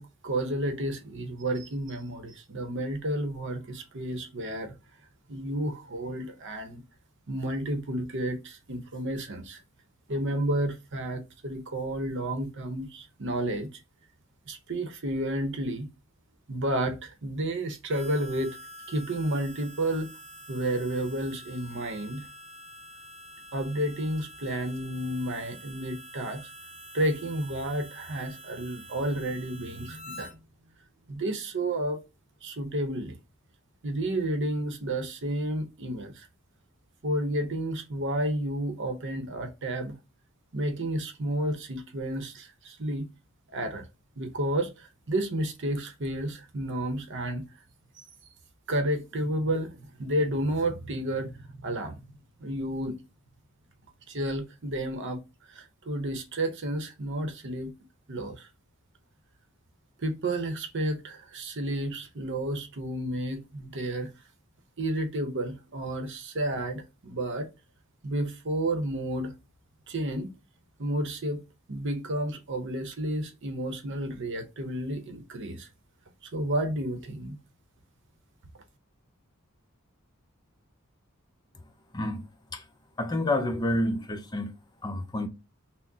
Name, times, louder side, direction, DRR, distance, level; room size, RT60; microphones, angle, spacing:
voice 1, 0.0-4.7 5.3-6.8 7.3-9.6 10.1-13.7 14.5-15.9 16.5-18.6 18.9-20.1 20.5-22.3 23.5-26.5 26.9-30.4 31.1-32.0 32.4-33.2 33.8-36.3 37.0-40.0 40.5-43.1 43.5-43.8 44.2-47.5 48.0-48.1 48.7-53.0 54.1-55.2 55.5-57.7 58.1-58.5 60.0-64.1 64.8-67.5 68.0-69.3 69.9-70.3 70.8-71.4 71.7-75.7 76.3-77.4, right 1 dB, 60° right, 0.8 m, -31 dB
Harmonica, 17.9-30.3, right 1 dB, 5° right, 1.8 m, -47 dB
voice 2, 83.0-84.5 84.8-85.3, left 1 dB, 20° left, 0.5 m, -28 dB
5.9 x 2.1 x 2.7 m
head